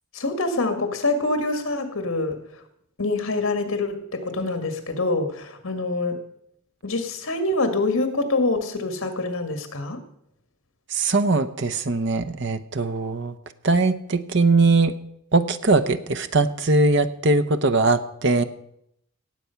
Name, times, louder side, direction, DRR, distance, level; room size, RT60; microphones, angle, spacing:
voice 1, 0.1-2.6 3.0-6.2 6.8-10.0, left 2 dB, 75° left, 8 dB, 1.8 m, -25 dB
voice 2, 10.9-13.3 13.6-14.9 15.3-18.4, right 3 dB, 55° right, 11 dB, 0.8 m, -21 dB
17.5 x 7.7 x 5.8 m, 0.75 s
head